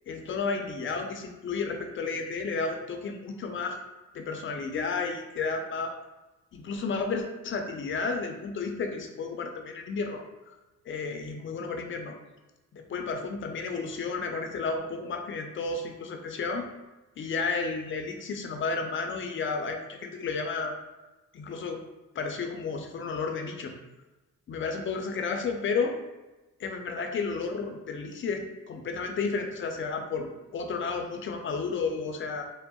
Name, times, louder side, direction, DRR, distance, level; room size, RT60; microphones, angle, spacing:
voice 1, 0.1-3.8 4.1-6.0 6.5-10.6 10.9-12.1 12.7-16.7 17.2-20.8 21.3-21.8 22.1-23.7 24.5-26.0 26.6-32.4, left 4 dB, 40° left, 4 dB, 0.5 m, -32 dB
3.5 x 2.0 x 2.2 m, 1.1 s
cardioid pair, 90°, 30 cm